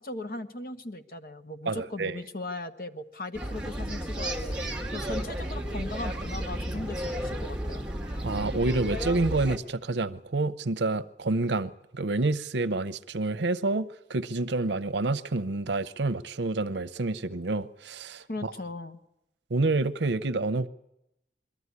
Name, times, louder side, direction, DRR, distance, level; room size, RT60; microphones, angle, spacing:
voice 1, 0.0-4.6 4.9-7.8 18.3-19.0, left 2 dB, 55° left, 1.1 m, -38 dB
voice 2, 1.7-2.2 8.2-18.5 19.5-20.7, right 2 dB, 85° right, 0.7 m, -28 dB
sound 1, 3.3-9.6, equal, 5° right, 1.3 m, -33 dB
22.5 x 13.5 x 9.6 m
head